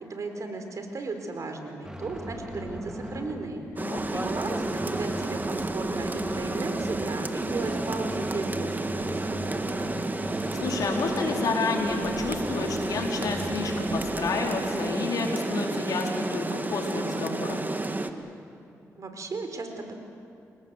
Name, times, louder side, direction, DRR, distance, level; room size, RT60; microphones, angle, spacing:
voice 1, 0.0-9.9 18.9-19.9, right 3 dB, 60° right, 5 dB, 4.2 m, -36 dB
sound 1, 1.8-14.3, equal, 10° right, 3.0 m, -39 dB
voice 2, 3.8-4.3 10.5-17.6, left 4 dB, 75° left, 1 dB, 4.1 m, -30 dB
Rain, 3.8-18.1, right 2 dB, 30° right, 1.9 m, -31 dB
30.0 x 18.5 x 8.2 m, 2.5 s
supercardioid pair, 50°, 6 cm